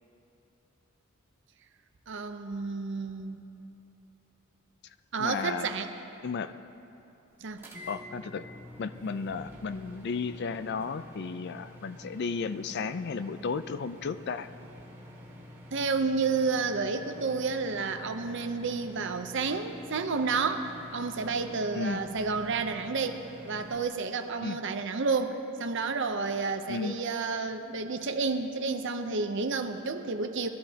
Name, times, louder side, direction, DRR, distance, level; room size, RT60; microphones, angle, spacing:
voice 1, 2.1-3.4 5.1-5.9 7.4-7.6 15.7-23.2 23.4-30.5, right 4 dB, 60° right, 7 dB, 0.7 m, -30 dB
voice 2, 5.2-5.7 6.2-6.5 7.9-8.4 8.8-14.5 21.7-22.0 24.4-24.6 26.7-27.0, left 5 dB, 55° left, 12 dB, 0.4 m, -34 dB
sound 1, 7.6-23.8, left 1 dB, 10° right, 1.8 m, -48 dB
21.0 x 12.0 x 2.9 m, 2.9 s
head